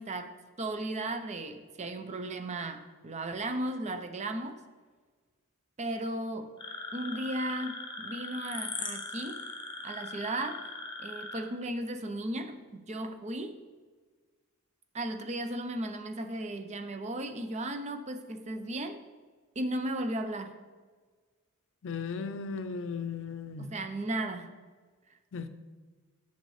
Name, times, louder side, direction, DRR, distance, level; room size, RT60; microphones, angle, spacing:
voice 1, 0.0-4.6 5.8-6.6 6.9-9.5 9.8-10.7 11.0-13.6 14.9-19.0 19.6-20.6 23.6-24.5, right 1 dB, 30° right, 0.6 m, -35 dB
sound 1, 6.6-11.4, left 3 dB, 20° left, 1.0 m, -40 dB
voice 2, 21.8-23.7 25.3-25.5, left 5 dB, 60° left, 0.5 m, -36 dB
8.0 x 6.6 x 3.2 m
head